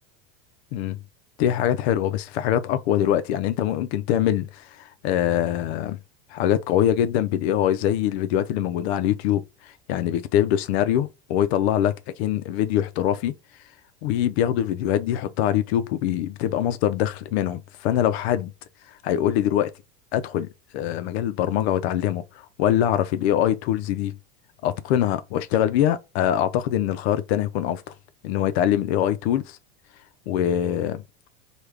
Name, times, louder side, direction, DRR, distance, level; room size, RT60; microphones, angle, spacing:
voice 1, 1.4-6.0 6.3-13.3 14.0-18.5 18.9-19.7 20.1-20.5 20.7-24.2 24.6-27.8 28.2-29.4 30.3-31.0, left 11 dB, 70° left, 0.5 m, -23 dB
3.4 x 2.3 x 3.2 m
supercardioid pair, 115°, 33 cm